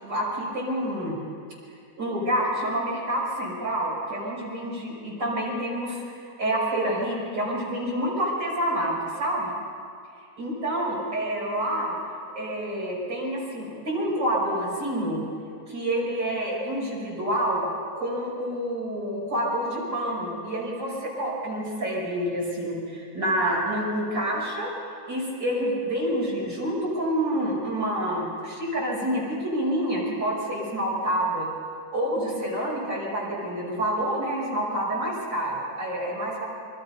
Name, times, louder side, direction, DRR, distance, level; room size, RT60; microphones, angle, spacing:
voice 1, 0.0-1.2 2.0-9.5 10.4-11.9 12.3-15.2 15.7-17.7 18.0-24.7 25.1-31.5 31.9-36.4, right 1 dB, 90° right, -4 dB, 6.9 m, -28 dB
28.0 x 23.5 x 5.6 m, 2.3 s
omnidirectional pair, 1.9 m